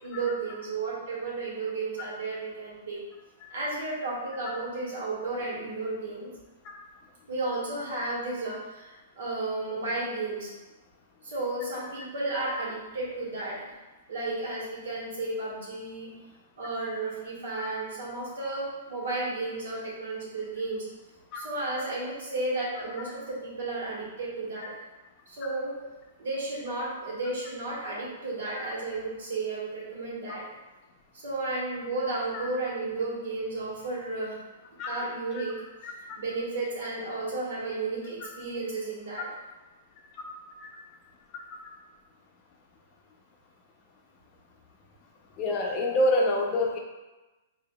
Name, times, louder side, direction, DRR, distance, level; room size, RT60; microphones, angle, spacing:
voice 1, 0.0-3.0 3.5-6.3 7.3-10.5 11.2-13.7 14.1-16.1 16.6-20.9 21.3-24.7 25.3-25.8 26.2-30.5 31.1-34.4 34.9-35.6 36.2-39.3, right 2 dB, 80° right, -4 dB, 1.4 m, -33 dB
voice 2, 35.8-36.2 40.6-40.7 41.3-41.4 45.4-46.8, left 1 dB, 30° left, 0 dB, 0.6 m, -27 dB
4.9 x 2.7 x 2.2 m, 1.1 s
hypercardioid pair, 150°, 0 cm